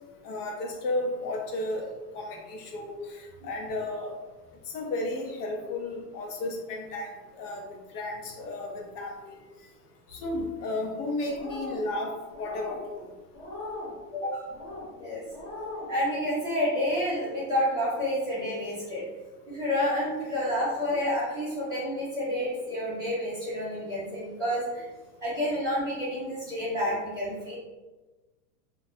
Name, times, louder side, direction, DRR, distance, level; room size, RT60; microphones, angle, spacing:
voice 1, 0.2-1.9 2.1-4.2 4.7-7.7 7.9-9.2 10.1-13.1, left 2 dB, 70° left, 0 dB, 0.7 m, -33 dB
sound 1, 11.3-11.8 12.3-12.8 13.3-13.9 14.5-14.9 15.3-15.9, left 2 dB, 30° left, 0.9 m, -39 dB
voice 2, 14.1-14.4 15.0-15.2 15.9-19.0 19.5-24.9 25.2-27.6, left 1 dB, 10° right, -12 dB, 0.4 m, -29 dB
2.2 x 2.2 x 2.6 m, 1.2 s
supercardioid pair, 145°, 48 cm